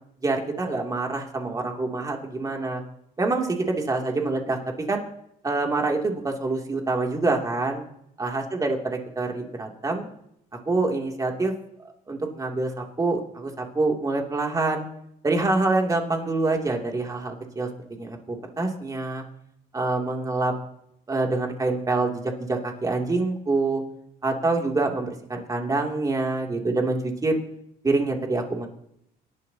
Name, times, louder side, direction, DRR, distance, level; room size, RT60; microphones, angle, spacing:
voice 1, 0.2-2.8 3.2-4.6 4.9-5.0 5.4-7.8 8.2-10.1 10.7-11.5 12.1-14.8 15.2-19.2 19.7-20.5 21.1-22.2 22.5-23.8 24.2-27.4 27.8-28.7, right 3 dB, 20° right, 1 dB, 2.8 m, -26 dB
27.5 x 11.5 x 2.9 m, 0.76 s
cardioid pair, 110°, 17 cm